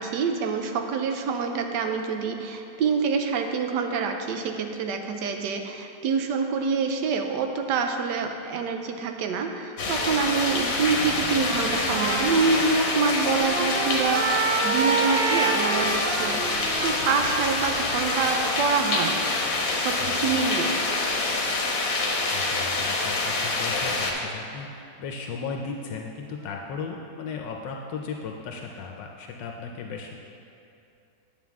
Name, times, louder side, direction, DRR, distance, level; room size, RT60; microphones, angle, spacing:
voice 1, 0.0-19.2 19.7-20.8, right 5 dB, 75° right, 5 dB, 1.2 m, -26 dB
sound 1, 9.8-24.1, left 3 dB, 55° left, 1.3 m, -26 dB
Trumpet, 11.3-19.3, right 4 dB, 55° right, 1.0 m, -29 dB
voice 2, 20.0-20.4 22.3-24.7 25.0-30.2, left 5 dB, 80° left, 2 dB, 1.2 m, -36 dB
9.1 x 7.5 x 3.5 m, 2.7 s
omnidirectional pair, 2.0 m